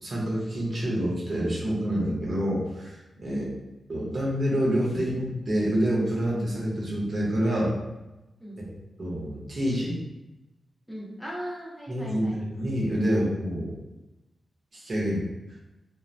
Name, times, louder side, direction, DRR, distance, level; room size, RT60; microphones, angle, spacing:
voice 1, 0.0-2.9 3.2-3.5 3.9-7.7 9.0-10.0 11.9-13.7 14.7-15.3, equal, 40° right, -4 dB, 0.8 m, -27 dB
voice 2, 3.2-3.6 8.4-8.6 10.9-12.4, equal, ahead, -5 dB, 0.5 m, -38 dB
2.6 x 2.1 x 3.1 m, 1.0 s
wide cardioid pair, 160°, 0 cm